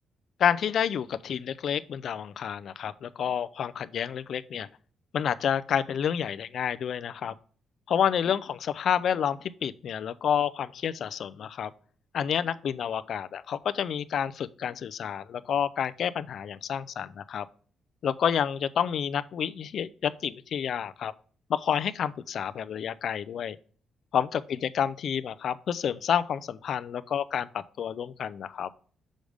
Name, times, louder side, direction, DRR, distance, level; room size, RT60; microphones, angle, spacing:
voice 1, 0.4-4.7 5.1-7.3 7.9-11.7 12.1-17.4 18.0-21.1 21.5-23.6 24.1-27.5 27.8-28.7, left 8 dB, 55° left, 0.4 m, -29 dB
6.4 x 5.0 x 3.3 m
cardioid pair, 140°, 0 cm